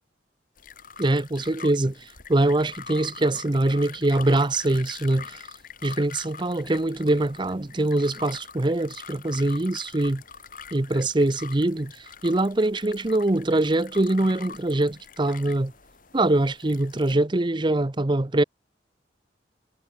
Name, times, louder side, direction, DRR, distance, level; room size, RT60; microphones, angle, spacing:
sound 1, 0.6-17.1, left 6 dB, 50° left, 6.5 m, -44 dB
voice 1, 1.0-1.9 2.3-5.4 5.8-10.2 10.7-11.9 12.2-15.7 16.1-18.4, right 2 dB, 25° right, 0.7 m, -23 dB
head